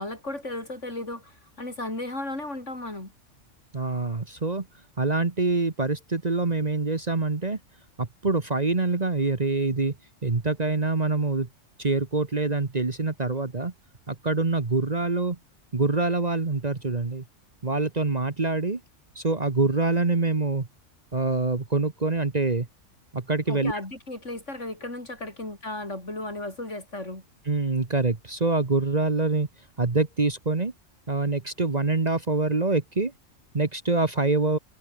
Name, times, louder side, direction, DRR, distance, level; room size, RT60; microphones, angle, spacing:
voice 1, 0.0-3.1 23.5-27.2, left 2 dB, 65° left, 6.5 m, -35 dB
voice 2, 3.7-4.7 5.0-7.6 8.0-9.9 10.2-11.5 11.8-13.7 14.1-15.4 15.7-17.2 17.6-18.8 19.1-20.7 21.1-22.7 23.1-23.7 27.5-29.5 29.8-30.7 31.1-33.1 33.5-34.6, right 3 dB, 35° right, 1.5 m, -25 dB
omnidirectional pair, 1.3 m